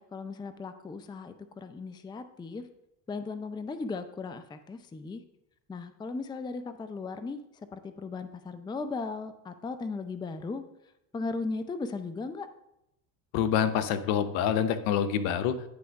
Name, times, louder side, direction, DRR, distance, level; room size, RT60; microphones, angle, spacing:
voice 1, 0.0-2.6 3.1-5.2 5.7-7.4 7.7-10.6 11.1-12.5, left 3 dB, 10° left, 10 dB, 0.4 m, -37 dB
voice 2, 13.3-15.6, left 8 dB, 70° left, 10 dB, 0.9 m, -26 dB
9.7 x 3.5 x 5.2 m, 0.83 s
hypercardioid pair, 80°, 48 cm